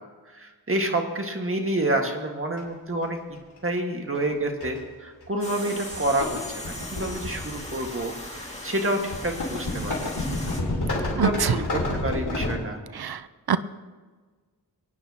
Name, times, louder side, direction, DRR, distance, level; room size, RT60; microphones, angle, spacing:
voice 1, 0.3-3.2 3.6-6.4 6.6-10.5 11.1-12.8, right 1 dB, 30° right, 2 dB, 1.8 m, -28 dB
sound 1, 2.6-2.7 4.1-4.3 4.6-4.8 5.5-5.7 5.9-8.0 9.1-12.6, left 2 dB, 70° left, 3.8 m, -29 dB
sound 2, 5.4-10.6, left 1 dB, 15° left, 2.1 m, -38 dB
voice 2, 11.2-11.5 12.9-13.2 13.5-13.6, right 7 dB, 65° right, 14 dB, 0.6 m, -23 dB
24.5 x 9.7 x 2.9 m, 1.4 s
wide cardioid pair, 80°, 41 cm